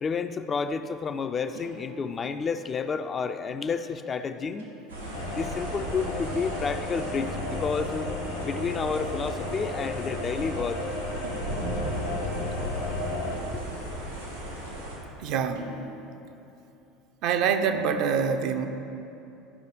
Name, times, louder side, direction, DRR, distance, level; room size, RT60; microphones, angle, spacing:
voice 1, 0.0-4.7 5.3-8.1 8.4-10.8 13.5-13.6, left 5 dB, 30° left, 9 dB, 0.4 m, -30 dB
sound 1, 1.5-2.9 4.6-5.7 7.1-7.5 9.0-9.5 11.2-12.3 13.3-15.0 15.5-15.8, right 2 dB, 70° right, 1.4 m, -48 dB
sound 2, 4.9-15.0, equal, 90° right, 2.1 m, -35 dB
sound 3, 5.1-13.4, left 2 dB, 65° left, 1.2 m, -35 dB
voice 2, 15.2-15.7 17.2-18.7, right 6 dB, 50° right, 7 dB, 0.5 m, -25 dB
12.5 x 5.2 x 3.9 m, 2.9 s
figure-of-eight pair, 70°, 0 cm